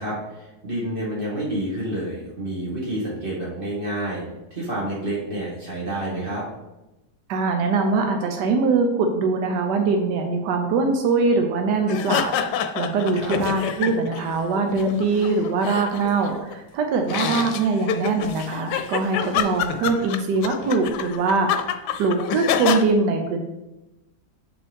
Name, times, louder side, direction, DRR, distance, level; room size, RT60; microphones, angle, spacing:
voice 1, 0.0-4.2 4.5-6.4 13.1-13.4, right 1 dB, 30° right, -6 dB, 2.3 m, -29 dB
voice 2, 7.3-23.4, right 3 dB, 80° right, 4 dB, 1.3 m, -22 dB
sound 1, 11.9-14.2 14.5-16.5 17.0-22.8, left 8 dB, 80° left, 1.2 m, -27 dB
8.0 x 5.4 x 3.5 m, 0.98 s
omnidirectional pair, 1.8 m